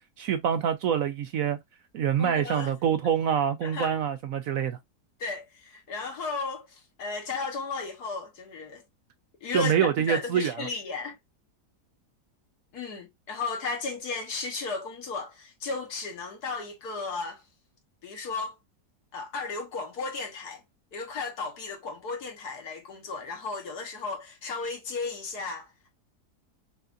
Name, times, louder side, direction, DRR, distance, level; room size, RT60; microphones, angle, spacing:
voice 1, 0.2-1.6 1.9-4.8 9.5-10.7, right 8 dB, 70° right, 0.9 m, -26 dB
voice 2, 2.2-2.7 3.6-3.9 5.2-8.8 9.4-11.2 12.7-17.4 18.0-18.6 19.1-20.6 20.9-25.9, left 4 dB, 70° left, 1.7 m, -34 dB
5.7 x 2.6 x 2.5 m
omnidirectional pair, 1.8 m